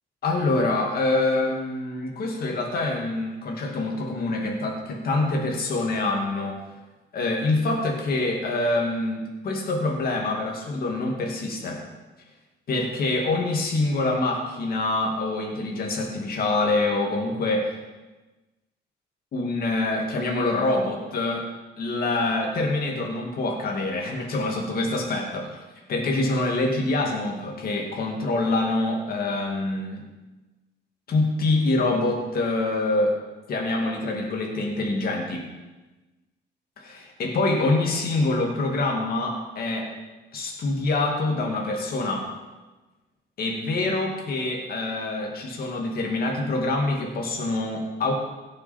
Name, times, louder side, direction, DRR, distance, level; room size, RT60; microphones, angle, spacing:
voice 1, 0.2-6.7 7.1-11.8 12.7-17.7 19.3-21.5 21.8-25.6 25.9-30.0 31.1-33.2 33.5-35.4 36.8-39.9 40.3-42.3 43.4-48.1, left 2 dB, 55° left, 0 dB, 2.2 m, -25 dB
17.0 x 6.8 x 4.4 m, 1.2 s
cardioid pair, 105°, 18 cm